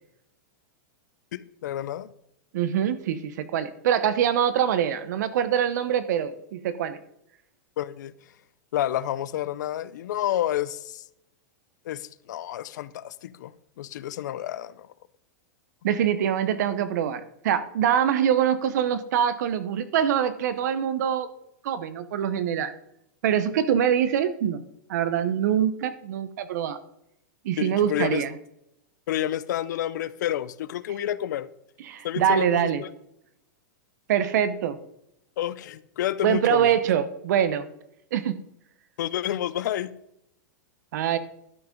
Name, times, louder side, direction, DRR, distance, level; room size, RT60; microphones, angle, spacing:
voice 1, 1.3-2.1 7.8-8.1 8.7-11.0 11.9-13.5 13.8-14.9 27.6-28.2 29.1-31.5 32.0-32.9 35.4-36.7 39.0-39.9, left 12 dB, 75° left, 0.5 m, -29 dB
voice 2, 2.5-7.0 15.8-21.3 21.6-22.7 23.2-24.6 24.9-26.8 27.4-28.3 31.8-32.8 34.1-34.8 36.2-37.7 38.1-38.4 40.9-41.2, right 9 dB, 70° right, 0.9 m, -24 dB
12.0 x 6.0 x 5.2 m
supercardioid pair, 145°, 10 cm